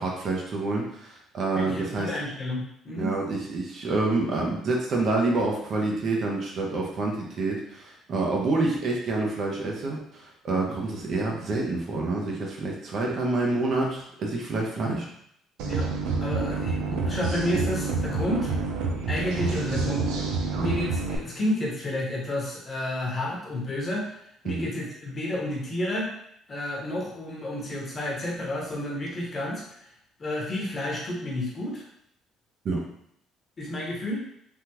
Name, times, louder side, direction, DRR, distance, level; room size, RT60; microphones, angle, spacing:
voice 1, 0.0-2.1 3.0-15.1 24.4-24.7 32.6-32.8, right 3 dB, 50° right, -1 dB, 0.8 m, -27 dB
voice 2, 1.5-3.1 15.6-15.9 16.2-18.6 19.1-20.3 20.6-26.1 26.5-29.9 30.2-31.8 33.6-34.2, left 1 dB, 35° left, -2 dB, 1.0 m, -31 dB
sound 1, 15.6-21.2, right 4 dB, 90° right, 0.5 m, -28 dB
3.5 x 2.3 x 2.9 m, 0.71 s
cardioid pair, 115°, 0 cm